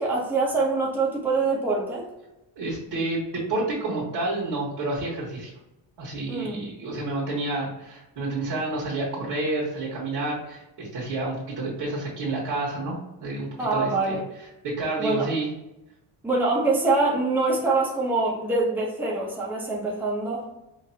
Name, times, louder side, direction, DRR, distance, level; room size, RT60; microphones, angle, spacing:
voice 1, 0.0-2.1 6.3-6.6 13.6-14.2 15.0-15.3 16.2-20.4, right 3 dB, 5° right, -4 dB, 0.7 m, -24 dB
voice 2, 2.6-5.5 6.0-14.2 14.6-15.5, right 2 dB, 60° right, -5 dB, 1.4 m, -29 dB
5.1 x 2.6 x 2.7 m, 0.93 s
wide cardioid pair, 175°, 46 cm